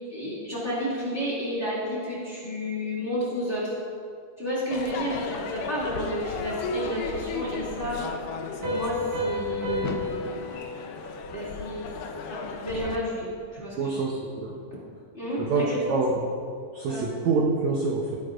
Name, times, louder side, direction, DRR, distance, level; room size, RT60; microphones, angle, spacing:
voice 1, 0.1-3.8 4.4-8.0 8.6-10.6 11.3-11.9 12.3-14.0 15.1-15.8 16.9-17.0, equal, 20° left, -7 dB, 2.3 m, -31 dB
Crowd / Fireworks, 4.7-13.0, left 4 dB, 75° left, 2.0 m, -35 dB
Piano, 8.6-12.0, left 1 dB, 50° right, 3.3 m, -33 dB
voice 2, 13.8-14.6 15.4-16.1 16.7-18.2, right 4 dB, 75° right, -1 dB, 1.7 m, -26 dB
18.0 x 9.0 x 2.5 m, 2.3 s
omnidirectional pair, 4.3 m